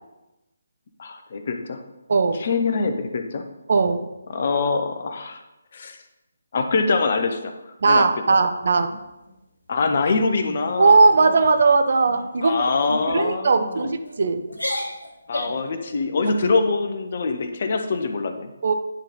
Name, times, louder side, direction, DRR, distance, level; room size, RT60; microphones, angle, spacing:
voice 1, 1.0-1.8 2.4-3.4 4.3-5.4 5.7-6.0 6.5-7.5 7.8-8.0 8.3-8.4 9.7-11.0 12.4-13.9 15.3-18.5, left 4 dB, 45° left, 7 dB, 0.8 m, -24 dB
voice 2, 2.1-2.5 3.7-4.1 7.8-8.9 10.8-12.6 13.1-14.4 18.6-18.7, right 4 dB, 55° right, 8 dB, 0.7 m, -18 dB
sound 1, 8.7-9.4 9.8-10.0 10.4-10.7 11.1-11.4 12.0-12.4 12.9-13.1 13.8-14.1 14.5-15.7, left 1 dB, 75° left, 1.5 m, -33 dB
9.7 x 4.0 x 4.1 m, 0.97 s
figure-of-eight pair, 145°, 0 cm